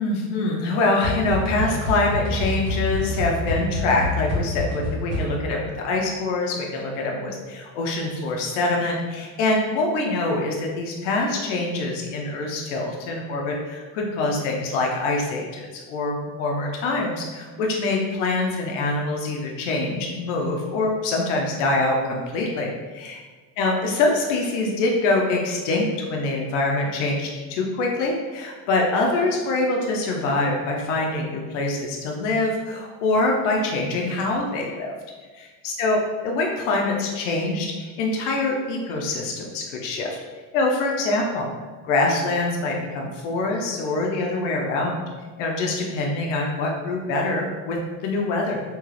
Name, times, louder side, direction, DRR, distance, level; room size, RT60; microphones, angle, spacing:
voice 1, 0.0-23.2 23.6-34.9 35.6-40.1 40.5-41.5 41.8-45.0 45.4-47.8 48.0-48.6, left 2 dB, 85° left, 0 dB, 0.6 m, -24 dB
sound 1, 1.0-5.6, left 1 dB, 45° right, 1.2 m, -27 dB
2.9 x 2.3 x 3.2 m, 1.4 s
supercardioid pair, 135°, 36 cm